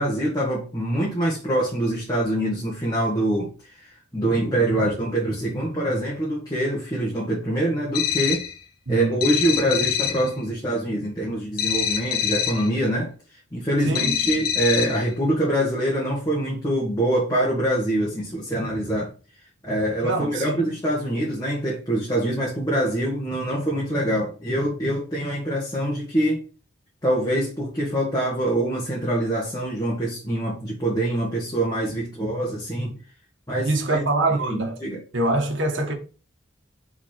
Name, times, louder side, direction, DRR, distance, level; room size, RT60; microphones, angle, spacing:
voice 1, 0.0-8.4 8.9-13.1 13.5-19.1 19.6-26.4 27.0-33.0 33.5-34.0 34.3-35.0, right 1 dB, 20° left, 1.7 m, -24 dB
sound 1, 7.9-8.6 9.2-10.3 11.6-12.7 13.9-15.1, left 9 dB, 50° left, 0.9 m, -25 dB
voice 2, 8.9-9.2 13.8-14.5 20.0-20.7 33.6-34.8 35.1-35.9, right 2 dB, 70° right, 1.7 m, -24 dB
5.9 x 4.2 x 5.8 m
head